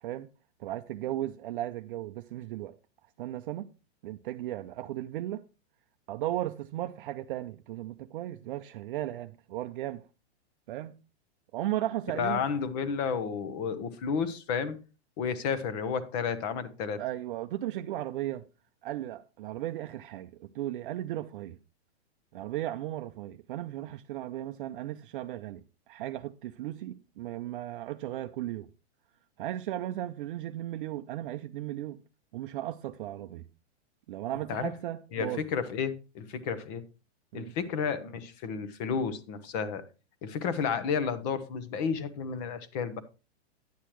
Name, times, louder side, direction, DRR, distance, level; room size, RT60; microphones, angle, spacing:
voice 1, 0.6-2.7 3.2-3.7 4.0-5.4 6.1-10.0 10.7-11.0 11.5-12.4 17.0-18.4 18.8-21.6 22.3-28.7 29.4-32.0 32.3-33.4 34.1-35.4 37.3-37.5, right 13 dB, 50° right, 0.5 m, -36 dB
voice 2, 12.1-14.8 15.2-17.0 34.5-34.7 35.1-36.8 37.3-39.8 40.2-43.0, left 6 dB, 40° left, 1.0 m, -31 dB
10.0 x 8.3 x 3.1 m
hypercardioid pair, 155°, 33 cm